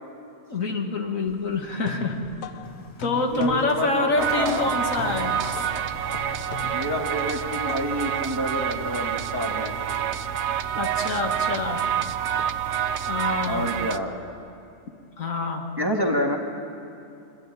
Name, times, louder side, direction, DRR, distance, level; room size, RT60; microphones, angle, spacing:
voice 1, 0.5-2.2 3.0-5.4 10.8-11.9 13.1-13.6 15.2-15.7, left 3 dB, 75° left, 3 dB, 2.1 m, -26 dB
sound 1, 1.3-8.1, left 9 dB, 55° left, 0.6 m, -40 dB
Engine, 2.6-12.8, left 3 dB, 15° left, 1.2 m, -49 dB
voice 2, 3.2-4.8 6.7-10.0 13.4-14.2 15.8-16.4, equal, 15° right, 1 dB, 1.7 m, -28 dB
sound 2, 4.2-14.0, right 9 dB, 60° right, 0.9 m, -28 dB
25.5 x 13.0 x 9.0 m, 2.6 s
omnidirectional pair, 1.4 m